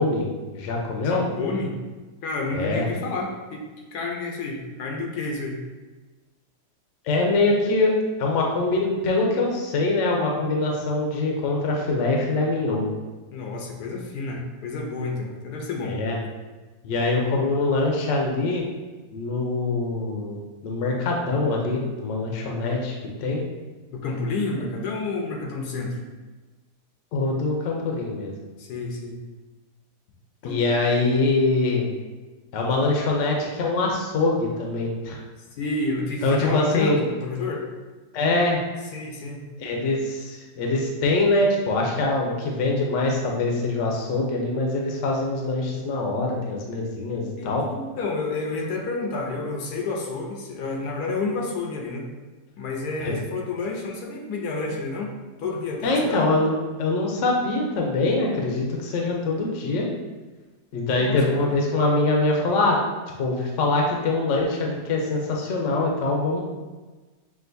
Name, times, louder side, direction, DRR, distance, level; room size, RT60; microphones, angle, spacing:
voice 1, 0.0-1.3 2.5-2.8 7.0-7.9 8.2-12.9 15.8-16.2 16.8-18.6 19.1-23.4 27.1-28.3 30.4-31.9 32.5-35.2 36.2-37.0 38.1-38.6 39.6-47.6 53.0-53.2 55.8-56.5 56.8-59.9 60.7-62.8 63.2-66.4, left 2 dB, 60° left, 0 dB, 0.9 m, -23 dB
voice 2, 1.0-1.8 2.2-3.6 3.9-5.6 13.3-16.0 23.9-26.0 28.6-29.2 30.4-30.6 35.5-37.7 38.9-39.4 47.4-52.1 52.6-55.1 55.4-56.3 61.0-61.5, left 3 dB, 75° left, 0 dB, 1.2 m, -30 dB
6.1 x 2.5 x 2.6 m, 1.2 s
omnidirectional pair, 1.7 m